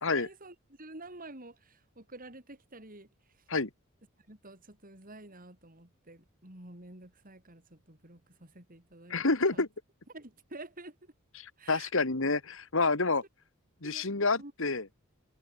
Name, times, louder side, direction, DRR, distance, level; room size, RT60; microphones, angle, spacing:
voice 1, 0.1-3.1 4.3-9.2 9.5-9.6 10.1-11.1 11.6-11.9 13.0-13.1 13.8-14.0 14.4-14.7, right 2 dB, 40° right, 5.3 m, -49 dB
voice 2, 9.1-9.7 11.4-13.2 13.8-14.8, left 3 dB, 65° left, 2.1 m, -28 dB
head